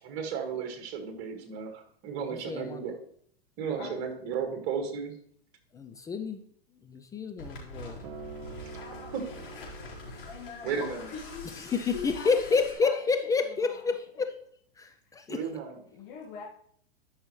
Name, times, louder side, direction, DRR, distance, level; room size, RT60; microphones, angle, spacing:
voice 1, 0.0-3.0 3.6-5.1 9.1-9.2 10.6-11.0 15.3-15.8, right 6 dB, 45° right, 4 dB, 1.9 m, -34 dB
voice 2, 2.3-2.8 5.7-6.4 6.8-8.0 11.6-14.4 14.8-15.4, left 5 dB, 10° left, 6 dB, 0.4 m, -29 dB
sound 1, 7.4-12.7, left 2 dB, 70° left, 3.9 m, -44 dB
Acoustic guitar, 8.0-12.3 13.2-13.3, right 5 dB, 75° right, 1.1 m, -48 dB
voice 3, 10.7-13.1 13.4-13.9 15.9-16.4, left 6 dB, 55° left, -4 dB, 1.9 m, -42 dB
12.0 x 5.5 x 3.2 m, 0.63 s
hypercardioid pair, 115°, 32 cm